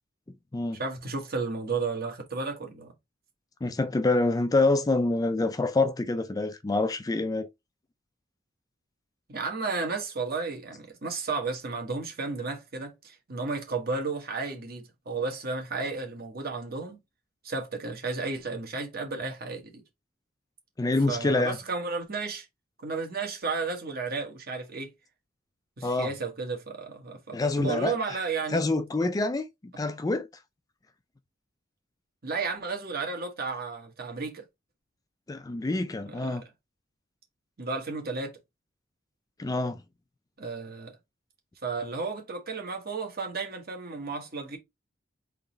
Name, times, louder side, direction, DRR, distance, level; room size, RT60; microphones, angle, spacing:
voice 1, 0.7-2.9 9.3-17.0 17.4-19.8 21.1-22.5 22.8-24.9 25.8-28.6 32.2-34.4 36.1-36.4 37.6-38.4 40.4-40.9 41.6-44.6, right 4 dB, 50° right, 1.3 m, -33 dB
voice 2, 3.6-7.5 20.8-21.6 25.8-26.1 27.3-28.0 28.5-30.3 35.3-36.4 39.4-39.8, left 2 dB, 20° left, 0.4 m, -26 dB
3.8 x 3.0 x 3.9 m
head